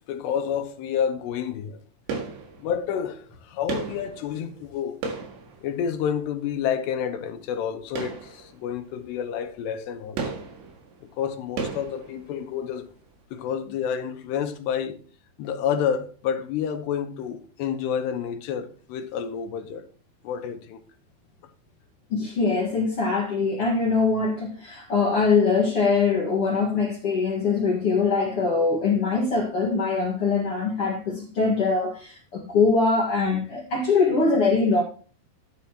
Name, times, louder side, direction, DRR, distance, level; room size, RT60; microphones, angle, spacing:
voice 1, 0.1-1.8 2.6-5.0 5.6-10.3 11.2-12.9 13.3-15.0 15.4-19.9 20.2-20.8, left 8 dB, 85° left, 3.1 m, -29 dB
sound 1, 2.1-3.0 3.7-6.3 7.9-8.9 9.2-9.4 10.2-12.7 13.0-13.1, right 4 dB, 80° right, 4.0 m, -35 dB
voice 2, 22.1-34.8, left 4 dB, 50° left, 1.8 m, -23 dB
13.5 x 9.7 x 3.0 m
omnidirectional pair, 4.9 m